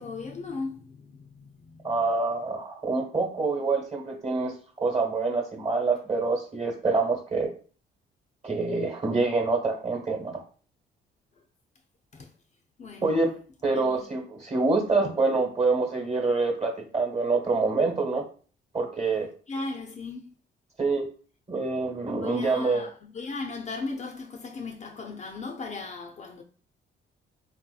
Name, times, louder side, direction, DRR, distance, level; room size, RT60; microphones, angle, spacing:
voice 1, 0.0-2.0 12.1-12.3 12.8-13.2 13.7-14.1 19.5-20.3 22.2-26.4, left 3 dB, 35° left, 0.4 m, -37 dB
voice 2, 1.8-7.5 8.4-10.4 13.0-13.3 13.6-18.2 18.7-19.3 20.8-21.0 21.5-22.9, right 3 dB, 35° right, 1.1 m, -26 dB
3.4 x 2.8 x 2.3 m
cardioid pair, 90°, 20 cm